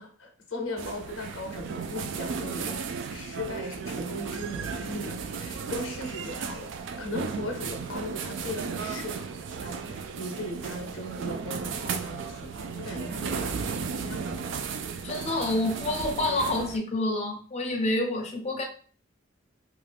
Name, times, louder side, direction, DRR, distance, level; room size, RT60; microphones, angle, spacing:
voice 1, 0.0-14.6, left 1 dB, 85° left, 0.6 m, -38 dB
sound 1, 0.8-16.8, right 5 dB, 65° right, 0.3 m, -35 dB
voice 2, 15.0-18.6, left 1 dB, 30° left, 0.5 m, -28 dB
2.4 x 2.3 x 3.2 m
head